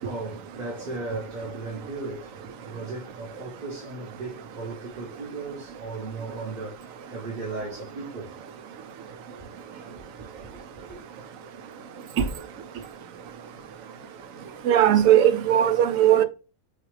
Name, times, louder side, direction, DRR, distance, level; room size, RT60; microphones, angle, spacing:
voice 1, 0.0-8.3 9.3-9.4 9.7-9.9 10.4-10.5 10.9-11.0, right 3 dB, 40° right, 1.0 m, -36 dB
voice 2, 14.7-16.2, right 11 dB, 80° right, 1.1 m, -18 dB
6.3 x 2.5 x 3.1 m
omnidirectional pair, 1.4 m